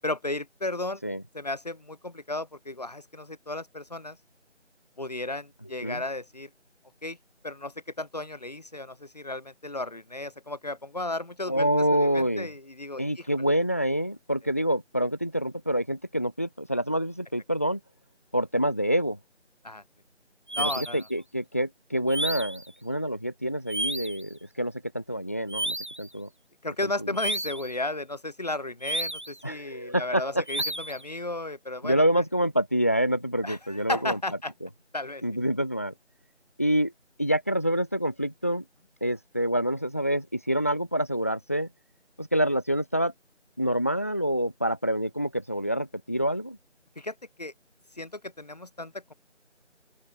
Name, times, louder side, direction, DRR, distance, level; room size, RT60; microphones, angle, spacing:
voice 1, 0.0-1.0 1.3-4.2 5.0-6.5 7.0-7.2 7.4-13.3 19.6-19.8 20.5-21.0 26.6-32.0 33.4-34.5 34.9-35.2 47.0-47.5 48.0-49.1, left 2 dB, 35° left, 7.9 m, -34 dB
voice 2, 11.5-12.5 13.0-17.8 18.3-19.2 20.6-26.3 26.8-27.1 29.4-30.4 31.8-34.2 35.2-35.9 36.6-36.9 37.2-38.6 39.0-41.7 42.2-43.1 43.6-46.6, equal, 10° left, 2.1 m, -27 dB
sound 1, 20.5-21.0 22.1-22.7 23.7-24.2 25.5-26.1 27.2-27.7 28.8-29.4 30.5-31.0, right 1 dB, 40° right, 2.2 m, -32 dB
open air
figure-of-eight pair, 170°, 36 cm